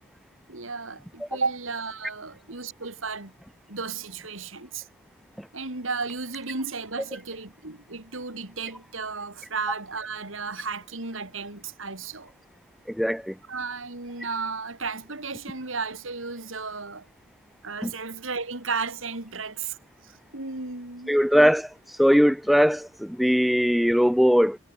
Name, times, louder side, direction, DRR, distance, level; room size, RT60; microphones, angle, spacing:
voice 1, 0.5-3.3 3.7-4.9 5.5-12.3 13.5-17.1 17.6-19.8 20.0-21.4, right 4 dB, 80° right, 3.3 m, -34 dB
voice 2, 12.9-13.3 17.8-17.9 21.1-21.7 22.0-24.6, equal, ahead, 0.4 m, -20 dB
head